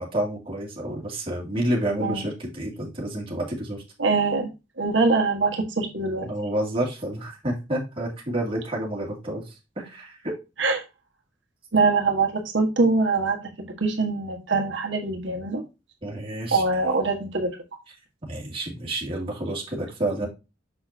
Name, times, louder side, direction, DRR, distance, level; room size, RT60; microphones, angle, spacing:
voice 1, 0.0-3.8 6.2-10.3 16.0-16.6 18.2-20.3, right 1 dB, 30° right, -2 dB, 2.5 m, -29 dB
voice 2, 4.0-4.5 4.8-6.3 10.6-10.8 11.7-15.6 16.5-17.5, right 3 dB, 70° right, 2 dB, 1.6 m, -23 dB
6.7 x 6.3 x 2.8 m, 0.26 s
head